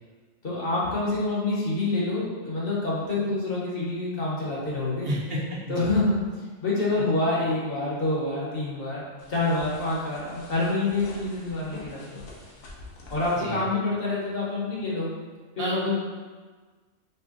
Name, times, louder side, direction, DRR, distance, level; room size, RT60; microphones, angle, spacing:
voice 1, 0.4-5.1 5.7-6.2 6.6-12.2 13.1-15.1 15.6-16.0, left 2 dB, 45° left, -6 dB, 1.3 m, -27 dB
voice 2, 5.0-5.4 5.7-5.9 13.3-13.6 15.6-15.7, right 1 dB, 60° right, -5 dB, 1.2 m, -30 dB
sound 1, 9.2-13.5, left 2 dB, 85° left, 1.2 m, -46 dB
5.3 x 2.2 x 3.8 m, 1.4 s
omnidirectional pair, 1.4 m